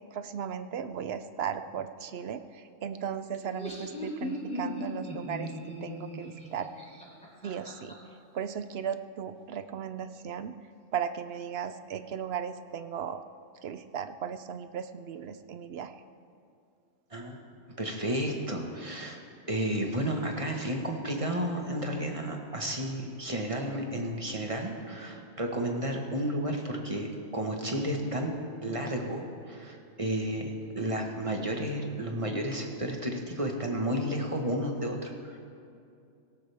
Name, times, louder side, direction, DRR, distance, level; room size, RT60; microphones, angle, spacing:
voice 1, 0.1-5.5 5.8-6.7 7.4-7.9 8.3-10.5 10.9-13.2 13.6-15.9, right 8 dB, 60° right, 11 dB, 0.8 m, -36 dB
Laughter, 3.3-7.9, equal, 5° left, 3.1 m, -38 dB
voice 2, 17.8-19.2 19.5-28.3 28.6-35.4, right 1 dB, 25° right, 1 dB, 1.4 m, -32 dB
18.0 x 17.5 x 3.5 m, 2.5 s
omnidirectional pair, 1.3 m